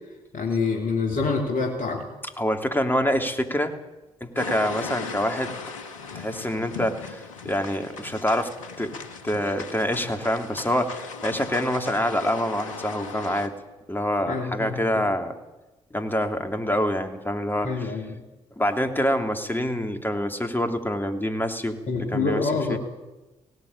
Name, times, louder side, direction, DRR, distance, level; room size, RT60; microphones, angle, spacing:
voice 1, 0.3-2.1 14.3-15.0 17.6-18.2 21.9-22.8, left 4 dB, 55° left, 1 dB, 3.1 m, -26 dB
voice 2, 2.4-3.7 4.2-5.5 6.1-8.5 8.8-8.9 9.2-13.6 13.9-15.3 15.9-17.9 18.6-22.8, equal, 10° left, 5 dB, 3.1 m, -26 dB
sound 1, 4.4-13.5, left 5 dB, 85° left, 1.2 m, -37 dB
17.5 x 17.5 x 8.7 m, 1.1 s
hypercardioid pair, 40°, 16 cm